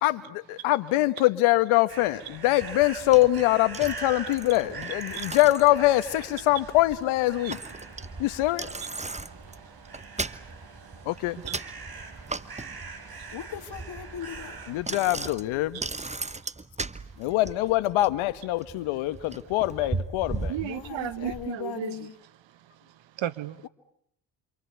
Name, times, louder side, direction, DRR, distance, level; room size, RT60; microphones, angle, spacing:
voice 1, 0.0-7.6 8.2-8.7 11.0-11.4 14.7-15.8 17.2-20.5, left 17 dB, 80° left, 1.5 m, -24 dB
sound 1, 1.9-14.8, right 4 dB, 50° right, 5.7 m, -43 dB
Bicycle, 2.6-21.5, right 3 dB, 15° right, 1.1 m, -38 dB
voice 2, 7.9-8.2 9.0-9.9 10.6-11.1 11.5-13.4 15.7-15.8 16.2-16.4 17.1-17.3 20.5-22.1 22.4-23.6, right 12 dB, 70° right, 1.5 m, -38 dB
voice 3, 13.3-14.6 20.6-22.1, left 10 dB, 55° left, 2.0 m, -38 dB
27.5 x 26.5 x 8.2 m
supercardioid pair, 60°, 48 cm